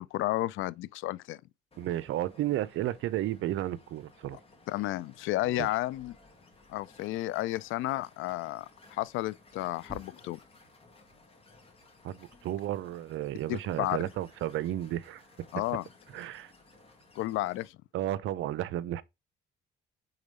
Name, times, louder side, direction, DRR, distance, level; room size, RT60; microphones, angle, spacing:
voice 1, 0.0-1.4 4.7-6.2 6.7-10.4 13.5-14.0 15.5-15.8 17.2-17.8, left 16 dB, 85° left, 0.4 m, -32 dB
sound 1, 1.7-17.7, left 2 dB, 30° left, 2.1 m, -57 dB
voice 2, 1.8-4.4 5.4-5.7 12.0-15.2 16.1-16.5 17.9-19.0, right 13 dB, 80° right, 0.6 m, -33 dB
4.9 x 3.9 x 5.3 m
cardioid pair, 90°, 20 cm